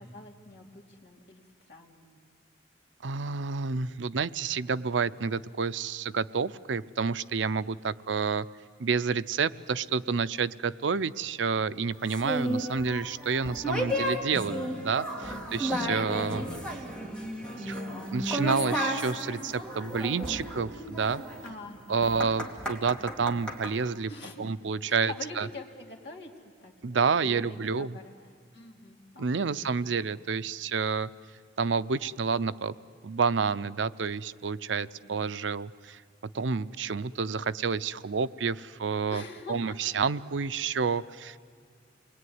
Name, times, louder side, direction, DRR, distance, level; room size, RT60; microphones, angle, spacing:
voice 1, 0.0-2.2 15.3-15.8 21.4-22.1 24.1-24.5 24.8-26.7 27.2-28.1 28.5-29.5 34.8-35.2 39.1-39.8 40.9-41.0, left 2 dB, 65° left, 0 dB, 3.0 m, -45 dB
voice 2, 3.0-8.5 8.8-16.4 17.6-17.8 18.1-21.2 21.9-24.1 24.4-25.5 26.8-28.0 29.2-31.1 31.6-32.7 33.0-36.0 36.3-39.2 39.5-41.4, right 5 dB, 90° right, 14 dB, 0.6 m, -29 dB
sound 1, 12.1-23.7, equal, 5° left, 2.7 m, -33 dB
29.0 x 21.5 x 9.5 m, 2.1 s
head